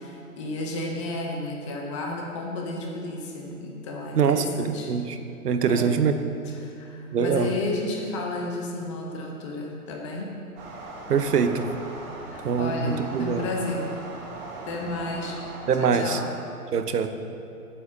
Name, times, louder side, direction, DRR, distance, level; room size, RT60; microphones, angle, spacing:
voice 1, 0.0-4.9 5.7-6.0 6.4-10.3 12.3-13.9 14.6-15.4 15.8-16.3, left 2 dB, 20° left, 1 dB, 0.7 m, -32 dB
voice 2, 4.2-5.2 5.4-6.1 7.1-7.5 11.1-11.7 12.4-13.5 15.7-16.2 16.7-17.1, right 6 dB, 85° right, 9 dB, 0.8 m, -23 dB
sound 1, 10.6-15.7, right 2 dB, 20° right, 0.9 m, -39 dB
8.4 x 5.1 x 7.0 m, 2.7 s
hypercardioid pair, 145°, 46 cm